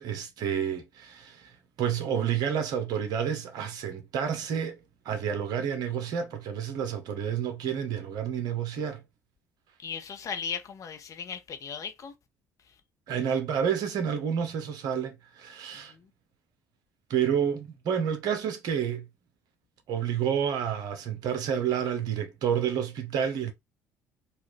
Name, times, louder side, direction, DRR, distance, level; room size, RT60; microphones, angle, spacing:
voice 1, 0.0-4.8 5.0-9.0 13.1-15.9 17.1-19.1 19.9-23.5, right 8 dB, 55° right, 0.9 m, -29 dB
voice 2, 9.8-12.1 15.9-16.0, left 7 dB, 40° left, 0.8 m, -37 dB
4.2 x 2.4 x 3.2 m
figure-of-eight pair, 50°, 8 cm